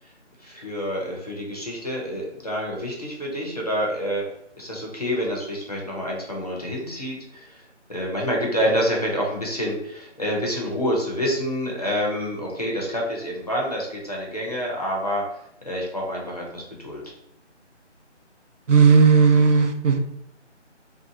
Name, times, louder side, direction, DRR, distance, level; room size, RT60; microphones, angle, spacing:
voice 1, 0.4-4.2 4.6-7.6 7.9-15.2 15.6-17.0, equal, 35° left, -3 dB, 0.6 m, -27 dB
voice 2, 18.7-20.0, right 5 dB, 85° right, 6 dB, 0.6 m, -15 dB
2.7 x 2.3 x 2.6 m, 0.75 s
figure-of-eight pair, 165°, 36 cm